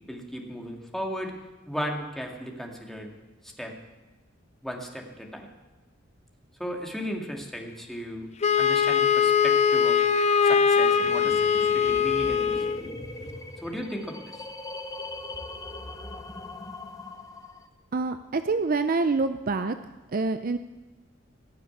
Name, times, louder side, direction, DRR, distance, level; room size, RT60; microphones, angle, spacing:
voice 1, 0.1-1.3 1.7-3.1 3.4-3.7 4.6-5.5 6.6-8.3 8.6-10.0 10.4-12.9 13.6-14.4, equal, ahead, 1 dB, 2.0 m, -36 dB
Wind instrument woodwind instrument, 8.4-12.8, left 6 dB, 35° left, 0.5 m, -22 dB
sound 1, 10.7-17.7, left 2 dB, 20° left, 1.0 m, -40 dB
voice 2, 17.9-19.8 20.1-20.6, right 3 dB, 45° right, 10 dB, 0.5 m, -26 dB
18.5 x 6.8 x 9.5 m, 1.2 s
head